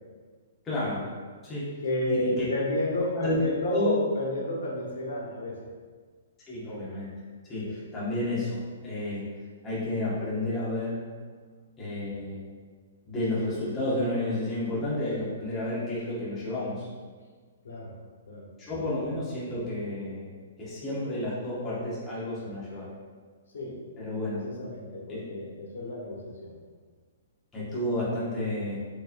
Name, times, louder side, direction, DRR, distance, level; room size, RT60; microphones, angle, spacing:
voice 1, 0.6-1.0 1.4-1.7 2.1-2.4 3.1-4.0 6.5-7.1 7.5-9.2 9.6-11.0 11.8-12.4 13.0-16.9 18.6-22.9 24.0-24.4 25.1-25.2 27.5-28.8, left 1 dB, 10° left, -10 dB, 0.8 m, -31 dB
voice 2, 1.8-5.6 7.6-7.8 17.6-17.9 18.3-18.5 18.8-18.9 23.5-23.8 24.1-26.5, left 1 dB, 85° left, -3 dB, 1.0 m, -31 dB
4.5 x 2.7 x 2.5 m, 1.5 s
hypercardioid pair, 175°, 0 cm